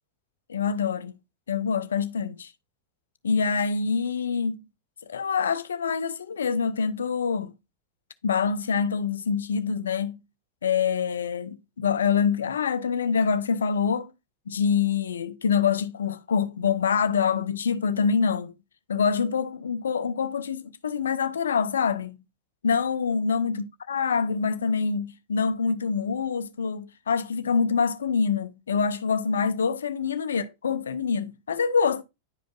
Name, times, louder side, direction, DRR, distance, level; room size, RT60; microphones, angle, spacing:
voice 1, 0.5-1.2 1.5-2.5 3.2-4.6 5.1-7.5 8.2-10.2 10.6-14.1 14.5-18.5 18.9-22.2 22.6-32.0, left 6 dB, 75° left, 0.6 m, -25 dB
10.5 x 5.2 x 2.3 m
figure-of-eight pair, 90°, 0 cm